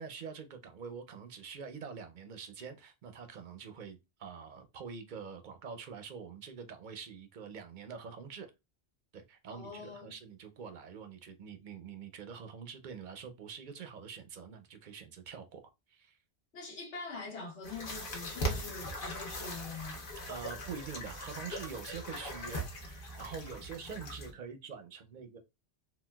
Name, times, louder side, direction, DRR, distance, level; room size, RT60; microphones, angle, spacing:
voice 1, 0.0-8.5 9.1-15.6 15.9-16.2 20.3-25.4, right 6 dB, 55° right, 0.6 m, -45 dB
voice 2, 9.5-10.1 16.5-20.0, left 4 dB, 75° left, 1.3 m, -44 dB
sound 1, 17.6-24.3, equal, 50° left, 0.9 m, -40 dB
3.9 x 2.2 x 2.2 m
omnidirectional pair, 1.1 m